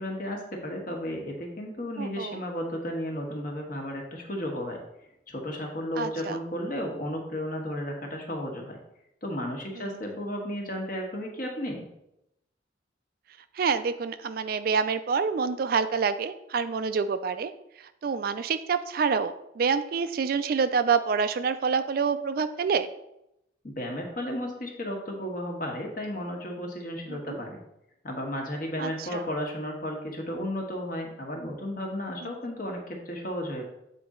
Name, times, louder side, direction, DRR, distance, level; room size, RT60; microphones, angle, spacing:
voice 1, 0.0-4.8 5.3-8.8 9.2-11.9 23.6-27.6 28.0-33.7, equal, 45° left, 1 dB, 1.3 m, -33 dB
voice 2, 2.0-2.4 6.0-6.4 9.8-9.9 13.5-17.5 17.8-22.9 27.1-27.4 28.8-29.2 32.2-32.3, right 5 dB, 50° right, 12 dB, 0.3 m, -27 dB
7.9 x 4.1 x 3.7 m, 0.83 s
head